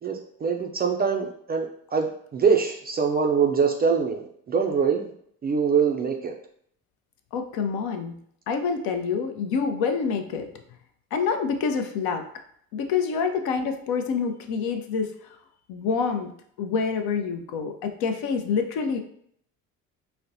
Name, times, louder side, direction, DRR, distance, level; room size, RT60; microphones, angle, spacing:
voice 1, 0.0-5.1 5.4-6.3, right 6 dB, 25° right, 2 dB, 0.3 m, -24 dB
voice 2, 7.3-8.1 8.5-10.6 11.1-12.3 12.7-15.1 15.7-16.3 16.6-19.0, left 5 dB, 60° left, 6 dB, 0.6 m, -27 dB
4.0 x 2.1 x 2.6 m, 0.66 s
hypercardioid pair, 60°, 42 cm